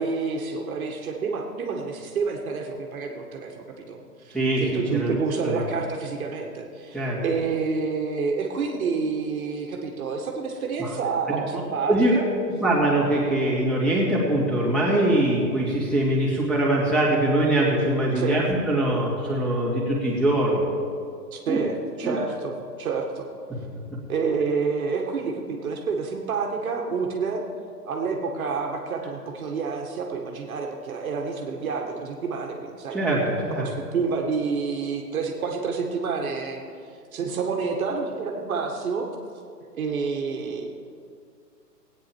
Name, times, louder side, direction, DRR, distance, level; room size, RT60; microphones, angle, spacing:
voice 1, 0.0-12.3 18.1-18.4 21.3-23.3 24.1-27.4 27.8-33.0 33.6-36.6 37.1-39.1 39.7-40.7, right 5 dB, 55° right, 2 dB, 1.7 m, -28 dB
voice 2, 4.3-5.1 5.4-5.6 6.9-7.2 10.8-10.9 11.3-11.4 11.9-12.2 12.6-20.7 21.5-21.6 22.0-22.2 32.9-33.7, right 1 dB, ahead, -6 dB, 2.5 m, -22 dB
16.5 x 9.2 x 4.5 m, 2.3 s
hypercardioid pair, 140°, 49 cm